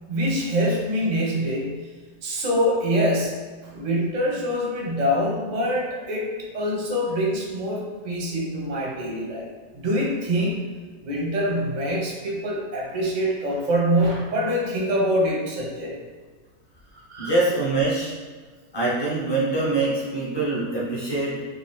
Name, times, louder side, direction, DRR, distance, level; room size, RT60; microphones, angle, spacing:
voice 1, 0.1-1.8 2.2-3.4 3.6-6.3 6.5-9.5 9.7-10.7 11.0-15.9 17.1-17.3, equal, 45° right, -2 dB, 0.6 m, -24 dB
voice 2, 17.2-18.1 18.7-21.4, right 2 dB, 25° left, -7 dB, 0.6 m, -24 dB
3.7 x 2.6 x 3.1 m, 1.4 s
omnidirectional pair, 1.6 m